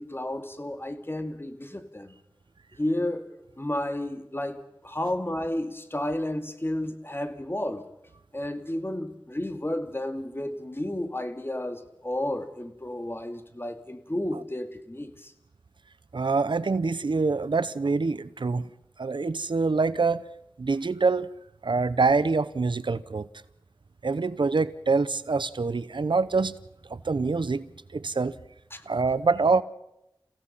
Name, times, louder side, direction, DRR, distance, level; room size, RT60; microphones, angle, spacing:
voice 1, 0.0-2.2 2.7-3.3 3.6-7.9 8.3-15.3 28.7-28.8, left 1 dB, 30° left, 2.2 m, -32 dB
voice 2, 16.1-18.7 19.0-20.2 20.6-21.3 21.6-23.3 24.0-26.6 26.9-28.4 28.9-29.6, right 4 dB, 80° right, 0.8 m, -25 dB
30.0 x 16.5 x 5.7 m
wide cardioid pair, 55°, 8 cm